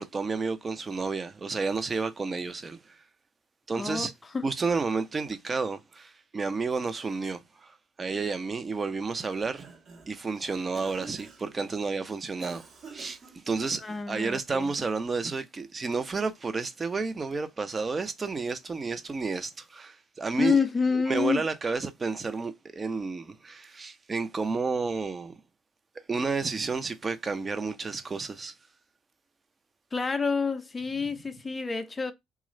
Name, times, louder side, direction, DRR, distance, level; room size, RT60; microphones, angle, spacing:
voice 1, 0.0-2.9 3.7-4.1 4.4-9.7 10.1-20.6 20.9-25.3 26.1-28.5, right 4 dB, 35° right, 0.7 m, -31 dB
voice 2, 3.7-4.1 4.3-4.5 13.8-14.7 20.4-21.4 29.9-32.1, left 5 dB, 30° left, 0.5 m, -28 dB
Cough, 9.4-10.2 10.7-11.6 12.4-14.1, right 5 dB, 50° right, 1.1 m, -48 dB
3.0 x 2.4 x 3.0 m
hypercardioid pair, 55°, 0 cm